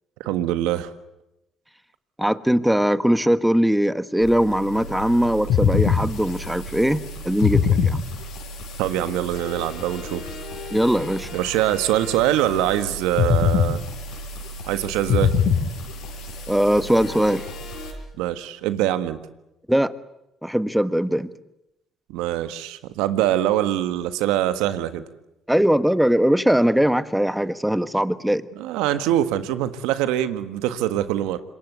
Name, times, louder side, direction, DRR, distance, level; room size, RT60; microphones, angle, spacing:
voice 1, 0.2-0.9 8.8-10.3 11.3-13.8 14.7-15.3 18.2-19.2 22.1-25.0 28.6-31.4, right 12 dB, 85° right, 12 dB, 1.6 m, -23 dB
voice 2, 2.2-8.0 10.7-11.3 16.5-17.4 19.7-19.9 20.4-21.3 25.5-28.5, equal, 5° right, 13 dB, 1.4 m, -20 dB
sound 1, 4.2-17.9, left 6 dB, 75° left, 7.1 m, -26 dB
26.5 x 23.0 x 8.2 m, 0.89 s
supercardioid pair, 65°, 0 cm